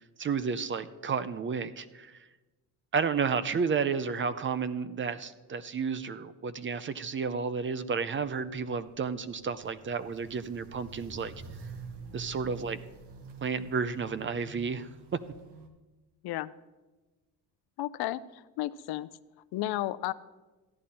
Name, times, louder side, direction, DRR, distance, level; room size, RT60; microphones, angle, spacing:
voice 1, 0.2-2.2 2.9-11.3 12.1-12.8 13.4-15.2, right 5 dB, 30° right, 14 dB, 0.5 m, -32 dB
Walk footsteps, 8.0-15.7, right 4 dB, 80° right, 1.6 m, -47 dB
voice 2, 17.8-19.1 19.5-20.1, left 15 dB, 65° left, 15 dB, 0.6 m, -33 dB
14.5 x 10.5 x 4.3 m, 1.2 s
cardioid pair, 120°, 40 cm